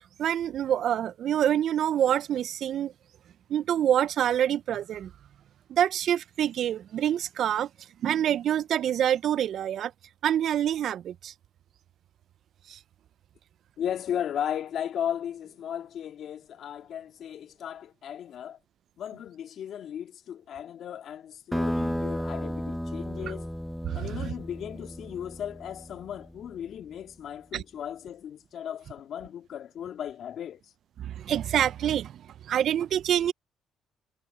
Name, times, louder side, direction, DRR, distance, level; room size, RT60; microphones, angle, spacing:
voice 1, 0.2-2.9 3.5-5.1 5.7-7.7 8.0-9.9 10.2-11.3 12.7-12.8 23.9-24.3 27.5-27.6 31.0-33.3, right 10 dB, 65° right, 0.4 m, -26 dB
voice 2, 13.8-18.6 19.0-23.5 23.9-30.7, left 9 dB, 65° left, 2.0 m, -36 dB
sound 1, 21.5-26.6, equal, ahead, 0.7 m, -34 dB
supercardioid pair, 65°, 0 cm